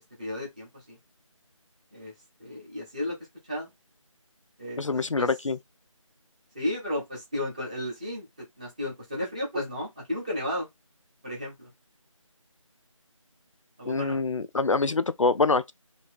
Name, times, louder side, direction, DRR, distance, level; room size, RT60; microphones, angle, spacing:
voice 1, 0.2-1.0 1.9-2.1 2.4-3.2 3.5-3.7 4.6-5.3 6.5-10.7 11.2-11.7 13.8-14.2, left 1 dB, 15° right, 1.0 m, -33 dB
voice 2, 4.8-5.6 13.9-15.7, left 3 dB, 65° left, 0.4 m, -25 dB
2.9 x 2.8 x 3.4 m
figure-of-eight pair, 165°, 17 cm